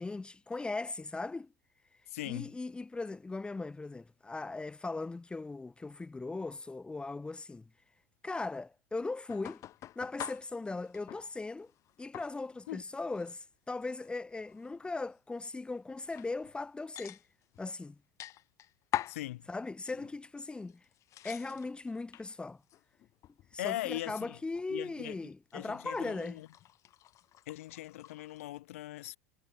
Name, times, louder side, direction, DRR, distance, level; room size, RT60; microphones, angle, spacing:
voice 1, 0.0-1.5 2.2-7.7 8.2-9.6 10.0-11.7 12.0-17.2 17.6-18.0 19.5-20.8 21.2-22.6 23.5-26.4, left 3 dB, 15° left, 3.8 m, -39 dB
voice 2, 2.1-2.5 12.7-12.8 19.1-19.5 23.6-24.4 24.7-25.2 25.5-26.5 27.5-29.2, left 16 dB, 75° left, 6.3 m, -40 dB
sound 1, 9.3-11.3 11.6-12.8 13.1-13.3 13.8-15.0 15.5-15.6 16.0-16.6 16.9-17.7 18.2-19.2 19.8-20.3 20.7-22.3 22.7-23.6 23.8-24.7 25.5-28.6, left 13 dB, 45° left, 1.8 m, -45 dB
hypercardioid pair, 95°, 7 cm